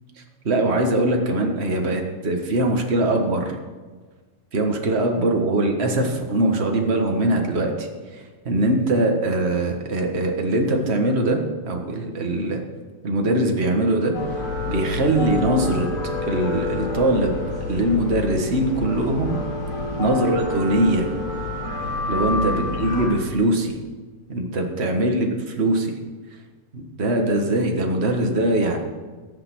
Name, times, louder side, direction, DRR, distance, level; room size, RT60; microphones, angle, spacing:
voice 1, 0.4-3.5 4.5-12.6 13.0-14.2 14.6-15.9 16.2-17.3 17.7-19.4 20.0-21.1 22.1-23.7 24.3-25.9 26.7-28.8, right 1 dB, 60° right, 2 dB, 0.6 m, -22 dB
sound 1, 14.1-23.1, left 3 dB, 70° left, 4.4 m, -28 dB
22.0 x 7.8 x 6.2 m, 1.4 s
omnidirectional pair, 3.8 m